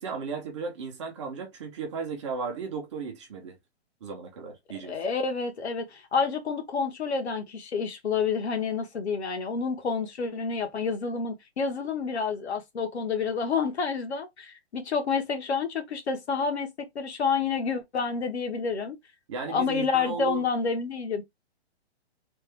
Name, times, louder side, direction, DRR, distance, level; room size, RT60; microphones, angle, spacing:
voice 1, 0.0-3.6 4.0-4.9 19.3-20.4, right 5 dB, 25° right, 0.8 m, -35 dB
voice 2, 4.8-19.0 19.5-21.2, left 5 dB, 75° left, 1.3 m, -29 dB
3.3 x 2.3 x 3.5 m
hypercardioid pair, 170°, 33 cm